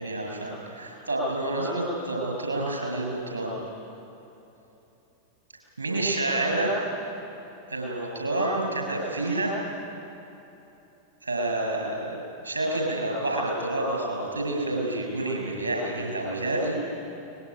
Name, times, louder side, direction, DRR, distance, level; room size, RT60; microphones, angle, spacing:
voice 1, 0.0-3.6 5.8-6.7 7.7-9.5 11.2-12.1 12.4-16.8, right 2 dB, 85° right, 0 dB, 6.9 m, -28 dB
23.0 x 20.5 x 9.9 m, 3.0 s
figure-of-eight pair, 90°, 0 cm